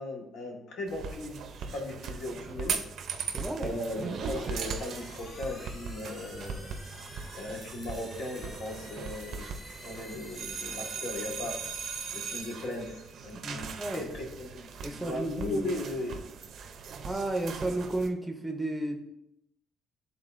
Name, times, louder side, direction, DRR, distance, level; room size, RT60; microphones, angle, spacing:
voice 1, 0.0-1.4 1.7-2.8 3.6-6.7 7.3-9.4 9.8-11.6 12.1-16.2, left 1 dB, 70° left, 0 dB, 1.5 m, -37 dB
sound 1, 0.9-18.1, right 5 dB, 50° right, 0.5 m, -39 dB
voice 2, 3.3-3.8 13.3-14.1 14.8-15.8 17.0-19.0, right 1 dB, 5° right, 3 dB, 0.6 m, -33 dB
sound 2, 3.6-13.3, left 1 dB, 30° left, 1.2 m, -49 dB
11.0 x 3.8 x 2.5 m, 0.82 s
cardioid pair, 170°, 0 cm